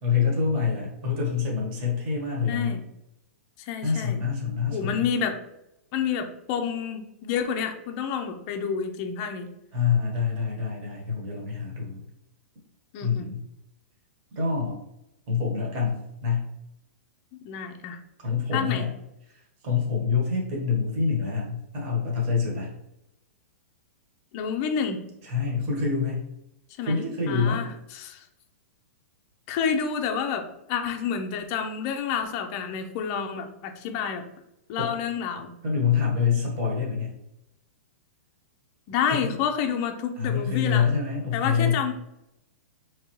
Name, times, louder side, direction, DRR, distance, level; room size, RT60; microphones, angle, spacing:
voice 1, 0.0-2.8 3.8-5.1 9.7-12.0 13.0-13.4 14.4-14.8 15.3-16.5 18.2-18.9 19.6-22.7 25.2-26.2 26.8-27.6 34.8-34.9 35.6-37.1 39.1-39.3 40.2-41.8, left 6 dB, 30° right, -2 dB, 1.3 m, -26 dB
voice 2, 2.5-2.8 3.6-4.2 4.7-5.4 5.9-9.5 12.9-13.3 17.4-18.0 18.5-18.9 24.3-25.0 26.8-27.0 27.3-28.2 29.5-30.4 30.7-34.2 34.7-35.5 38.9-40.9 41.3-41.9, left 7 dB, 30° left, 5 dB, 0.5 m, -29 dB
4.9 x 3.2 x 3.0 m, 0.87 s
hypercardioid pair, 170°, 8 cm